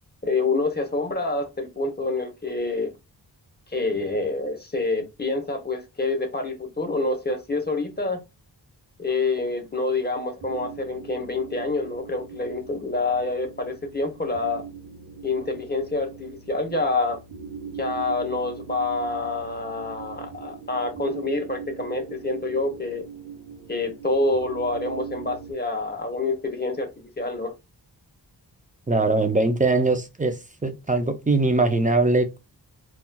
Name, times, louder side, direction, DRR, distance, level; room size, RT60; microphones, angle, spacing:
voice 1, 0.2-2.9 3.7-8.2 9.0-14.6 15.2-17.2 17.8-23.0 23.7-26.9 27.2-27.5, left 3 dB, 25° left, 0.8 m, -27 dB
sound 1, 10.4-25.5, right 6 dB, 70° right, 0.8 m, -41 dB
voice 2, 28.9-30.3 30.6-32.4, right 2 dB, 20° right, 0.5 m, -21 dB
3.9 x 2.3 x 2.2 m
cardioid pair, 60°, 43 cm